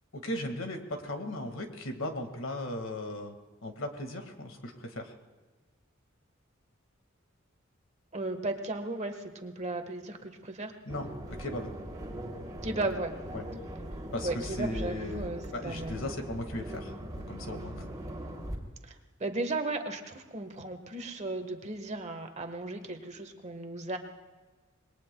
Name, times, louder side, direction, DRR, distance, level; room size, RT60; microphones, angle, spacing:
voice 1, 0.1-3.4 3.6-5.1 10.8-11.7 13.3-13.5 14.1-17.9, left 1 dB, 70° left, 5 dB, 1.9 m, -37 dB
voice 2, 8.1-10.7 12.6-13.1 14.2-16.0 18.8-18.9 19.2-24.0, right 2 dB, 35° right, 6 dB, 1.4 m, -35 dB
sound 1, 10.9-18.6, right 1 dB, 20° right, 2.9 m, -40 dB
26.5 x 21.0 x 2.3 m, 1.3 s
head